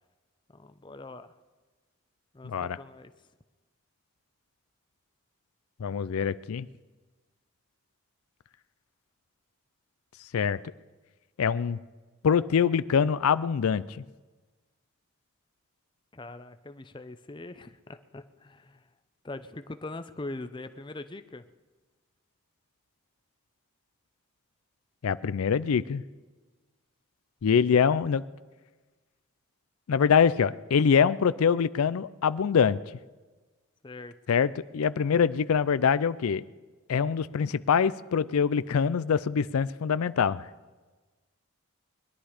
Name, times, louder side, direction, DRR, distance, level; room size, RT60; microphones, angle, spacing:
voice 1, 0.5-1.3 2.3-3.1 16.1-18.8 19.2-21.4 33.8-34.2, left 2 dB, 20° left, 10 dB, 0.5 m, -42 dB
voice 2, 2.4-2.8 5.8-6.7 10.3-10.6 11.4-11.8 12.2-14.0 25.0-26.0 27.4-28.2 29.9-32.8 34.3-36.4 36.9-40.5, left 6 dB, 90° left, 16 dB, 0.4 m, -24 dB
21.5 x 11.5 x 5.0 m, 1.3 s
head